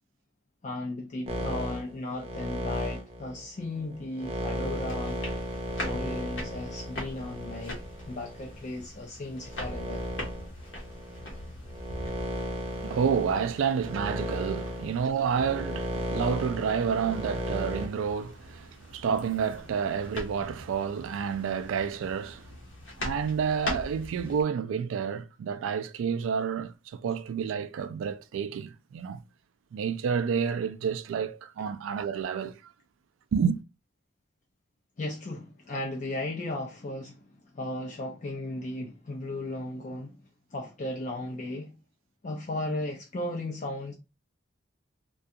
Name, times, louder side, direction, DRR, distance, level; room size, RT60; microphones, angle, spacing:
voice 1, 0.6-5.2 5.8-10.0 35.0-40.2 40.5-41.7 42.2-43.9, left 2 dB, 40° left, 0.4 m, -36 dB
sound 1, 1.3-8.6 9.2-17.9, right 1 dB, 30° right, 0.5 m, -35 dB
sound 2, 4.5-24.4, left 1 dB, 75° left, 0.8 m, -42 dB
voice 2, 12.7-22.5 23.0-29.2 29.7-32.6 33.3-33.6, right 6 dB, 85° right, 0.3 m, -29 dB
2.4 x 2.3 x 2.6 m
head